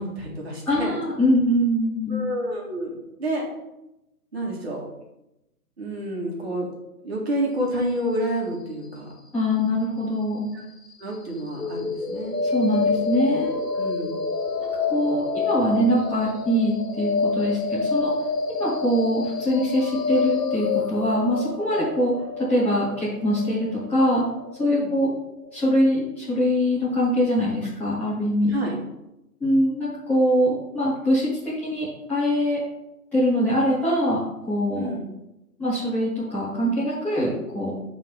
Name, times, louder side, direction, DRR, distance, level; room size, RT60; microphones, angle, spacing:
voice 1, 0.0-1.0 2.1-3.4 4.3-4.8 5.8-6.7 7.0-9.1 11.0-12.4 13.8-14.2 24.7-24.9 28.5-28.8 34.8-35.1, right 1 dB, 40° right, -2 dB, 1.9 m, -29 dB
voice 2, 0.7-2.3 9.3-10.4 12.4-13.5 14.9-18.1 18.5-24.2 24.6-25.1 25.5-28.5 29.4-32.6 33.1-34.9 35.6-37.7, equal, 5° left, -11 dB, 1.4 m, -23 dB
sound 1, 11.5-25.5, left 4 dB, 85° left, 1.2 m, -28 dB
11.0 x 3.9 x 3.5 m, 0.91 s
figure-of-eight pair, 150°, 47 cm